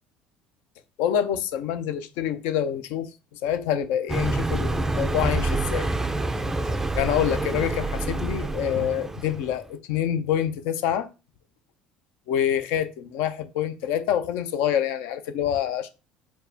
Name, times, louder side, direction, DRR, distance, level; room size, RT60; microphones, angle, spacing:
voice 1, 1.0-3.1 3.4-5.9 6.4-6.6 6.9-11.1 12.3-15.9, left 10 dB, 70° left, 0.4 m, -26 dB
Car passing by, 4.1-9.6, right 2 dB, 10° right, 0.3 m, -27 dB
4.5 x 2.2 x 2.7 m
hypercardioid pair, 75°, 3 cm